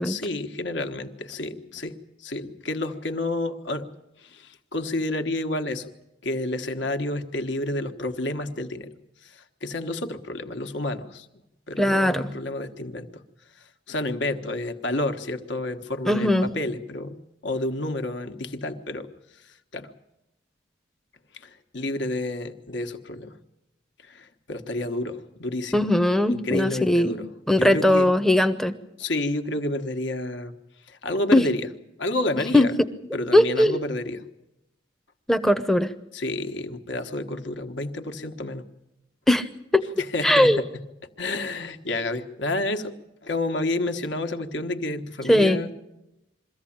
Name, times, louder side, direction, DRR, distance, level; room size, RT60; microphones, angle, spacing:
voice 1, 0.0-1.9 2.2-3.9 4.2-5.9 6.2-8.9 9.2-11.3 11.7-13.2 13.9-17.2 17.4-19.1 19.4-19.9 21.3-23.3 24.0-25.9 26.3-27.3 27.5-28.1 29.0-30.5 30.9-31.7 32.0-32.7 33.1-34.2 36.1-38.6 40.0-40.7 41.2-42.9 43.2-45.7, left 2 dB, 65° left, 7 dB, 1.3 m, -30 dB
voice 2, 11.8-12.3 16.1-16.5 25.7-27.2 27.5-28.7 31.3-31.5 32.5-32.7 33.3-33.8 35.3-35.9 39.3-39.4 39.7-40.6 45.3-45.6, left 1 dB, ahead, 10 dB, 0.7 m, -19 dB
23.0 x 15.0 x 8.7 m, 0.91 s
head